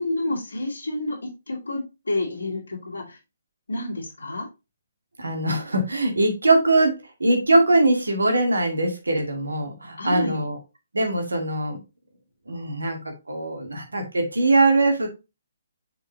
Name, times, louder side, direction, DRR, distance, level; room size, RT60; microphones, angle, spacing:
voice 1, 0.0-3.2 3.7-4.5 10.0-10.4, left 2 dB, 70° left, -4 dB, 2.4 m, -29 dB
voice 2, 5.2-10.6 10.9-11.8 12.5-15.1, right 2 dB, 70° right, 3 dB, 2.0 m, -22 dB
6.7 x 4.7 x 3.0 m, 0.26 s
figure-of-eight pair, 135°, 0 cm